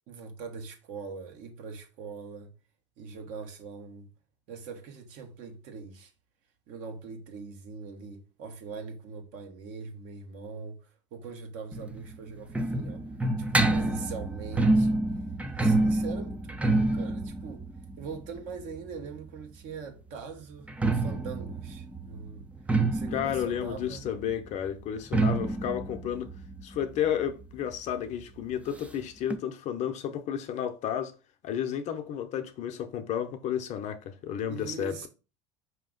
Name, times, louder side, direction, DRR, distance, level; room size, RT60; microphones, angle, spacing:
voice 1, 0.1-2.5 3.0-4.1 4.5-6.1 6.7-13.1 13.5-15.0 15.5-17.7 18.0-22.5 22.9-24.1 34.5-35.1, right 5 dB, 60° right, 1.3 m, -42 dB
sound 1, 11.7-19.4 20.5-27.9 28.2-28.3 28.5-28.6 29.3-29.4, right 2 dB, 10° right, 0.5 m, -28 dB
voice 2, 23.1-26.3 26.6-31.1 31.4-35.1, left 9 dB, 50° left, 0.7 m, -32 dB
4.8 x 2.9 x 3.8 m
hypercardioid pair, 90°, 15 cm